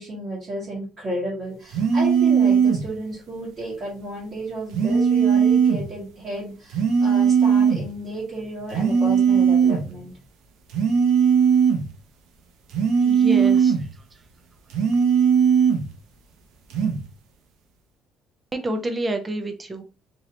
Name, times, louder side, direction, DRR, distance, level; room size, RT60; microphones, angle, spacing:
voice 1, 0.0-10.1, right 1 dB, 35° right, -8 dB, 1.6 m, -32 dB
sound 1, 1.7-2.9 4.7-5.9 6.7-7.9 8.7-9.9 10.7-11.9 12.7-13.9 14.7-15.9 16.7-17.0, right 7 dB, 85° right, 0.7 m, -18 dB
voice 2, 13.0-13.8 18.5-19.8, right 1 dB, 15° right, 6 dB, 0.4 m, -28 dB
3.0 x 2.8 x 2.8 m, 0.32 s
cardioid pair, 155°, 0 cm